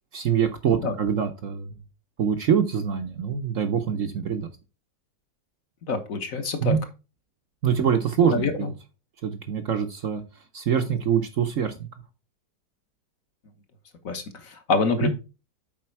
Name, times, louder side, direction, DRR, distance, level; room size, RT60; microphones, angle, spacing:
voice 1, 0.1-1.8 2.2-4.5 6.6-6.8 7.6-8.7 9.2-10.2 10.5-11.9 15.0-15.1, right 7 dB, 55° right, 7 dB, 1.0 m, -24 dB
voice 2, 5.9-6.8 8.3-8.7 14.0-15.1, left 4 dB, 55° left, 7 dB, 1.5 m, -26 dB
7.5 x 5.0 x 4.6 m, 0.30 s
omnidirectional pair, 1.9 m